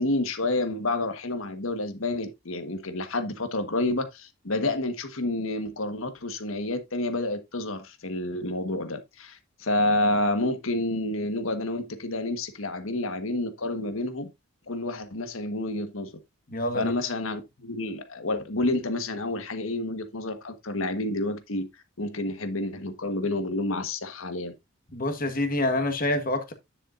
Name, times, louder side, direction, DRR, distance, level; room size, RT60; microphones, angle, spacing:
voice 1, 0.0-14.3 14.7-16.1 16.7-21.7 22.0-24.5, left 2 dB, 70° left, 1.4 m, -29 dB
voice 2, 16.5-16.9 24.9-26.5, left 1 dB, 40° left, 1.5 m, -27 dB
9.9 x 7.3 x 2.6 m
head